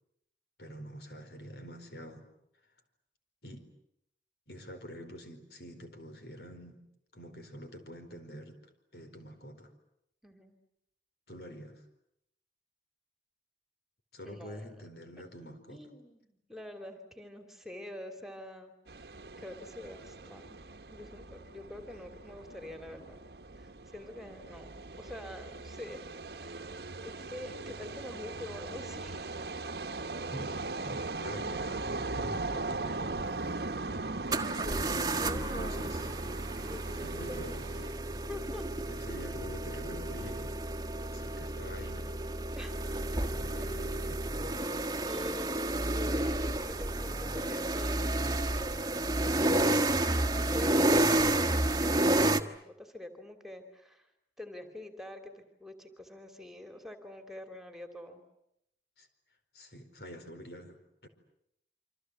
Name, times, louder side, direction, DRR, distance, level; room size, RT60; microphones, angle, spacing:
voice 1, 0.6-2.3 3.4-3.6 4.5-6.8 7.1-8.6 8.9-9.7 11.3-11.8 14.1-15.8 30.3-33.2 33.8-34.2 34.9-35.2 35.5-36.1 37.0-37.7 38.9-40.6 41.1-42.1 42.9-44.5 51.1-51.5 59.0-59.1 59.5-61.1, equal, 65° left, 7 dB, 4.6 m, -46 dB
voice 2, 10.2-10.5 14.3-14.6 15.4-19.1 19.4-20.6 20.9-23.2 23.6-26.1 26.4-26.7 27.0-29.3 34.6-35.9 36.5-37.4 38.3-38.7 42.6-43.2 45.0-48.3 50.3-54.1 54.4-58.2, left 1 dB, ahead, 6 dB, 3.0 m, -46 dB
sound 1, 18.9-37.9, right 3 dB, 65° right, 1.1 m, -39 dB
sound 2, 33.1-33.2 34.3-52.4, right 1 dB, 20° right, 1.4 m, -31 dB
28.5 x 25.5 x 8.2 m, 0.78 s
head